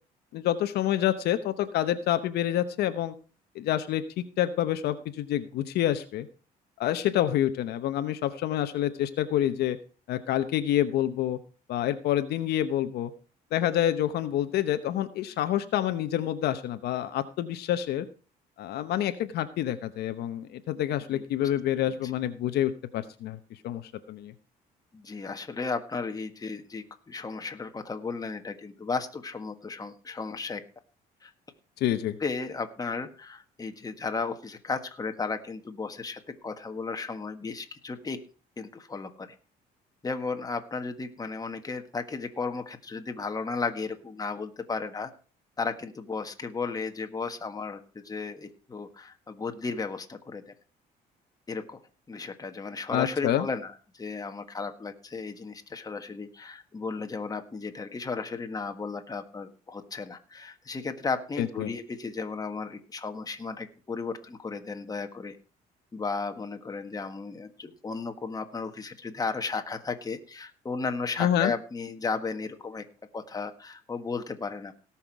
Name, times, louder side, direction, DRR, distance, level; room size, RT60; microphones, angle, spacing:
voice 1, 0.3-3.1 3.5-6.3 6.8-9.8 10.1-11.4 11.7-13.1 13.5-18.1 18.6-23.4 23.6-24.3 31.8-32.2 52.9-53.5 61.4-61.7 71.2-71.5, left 12 dB, 75° left, 10 dB, 1.0 m, -27 dB
voice 2, 21.1-21.5 22.0-22.1 24.9-30.6 31.2-31.3 32.2-38.2 38.6-39.3 40.0-45.1 45.6-50.5 51.5-51.8 52.1-65.4 65.9-72.8 73.1-74.7, left 4 dB, 20° left, 6 dB, 1.6 m, -34 dB
18.0 x 6.0 x 4.6 m, 0.36 s
cardioid pair, 110°, 17 cm